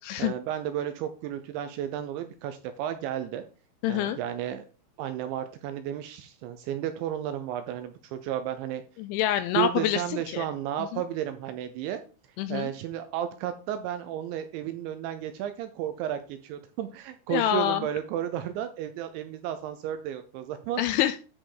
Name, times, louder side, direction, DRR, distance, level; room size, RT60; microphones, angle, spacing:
voice 1, 0.2-3.4 3.9-4.6 5.0-8.8 9.5-12.0 12.5-20.8, right 11 dB, 80° right, 9 dB, 2.7 m, -33 dB
voice 2, 3.8-4.2 9.0-10.0 10.3-10.5 10.9-11.0 12.4-12.7 17.3-17.9 20.8-21.2, left 12 dB, 85° left, 11 dB, 2.7 m, -26 dB
13.0 x 5.1 x 3.9 m, 0.36 s
omnidirectional pair, 5.8 m